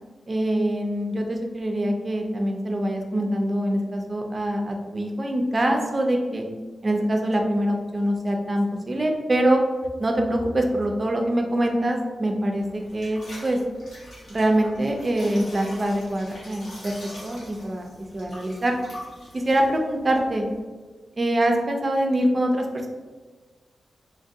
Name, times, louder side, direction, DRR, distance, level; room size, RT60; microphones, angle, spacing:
voice 1, 0.3-6.5 6.8-9.6 10.0-13.6 14.3-16.9 17.2-17.9 18.1-18.7 19.3-20.4 21.2-22.9, right 1 dB, 35° right, 2 dB, 0.4 m, -24 dB
sound 1, 12.6-20.6, left 1 dB, 85° left, 1.2 m, -44 dB
3.1 x 2.5 x 2.6 m, 1.4 s
wide cardioid pair, 100°, 0 cm